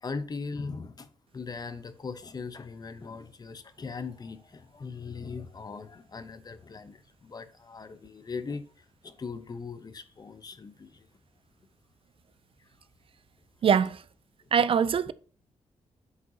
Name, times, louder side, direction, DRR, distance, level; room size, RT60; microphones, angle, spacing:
voice 1, 0.0-1.1 1.3-8.6 9.0-11.1, left 4 dB, 35° left, 0.7 m, -39 dB
voice 2, 13.6-14.0 14.5-15.1, right 7 dB, 50° right, 0.4 m, -23 dB
8.2 x 7.4 x 2.8 m
wide cardioid pair, 135°, 12 cm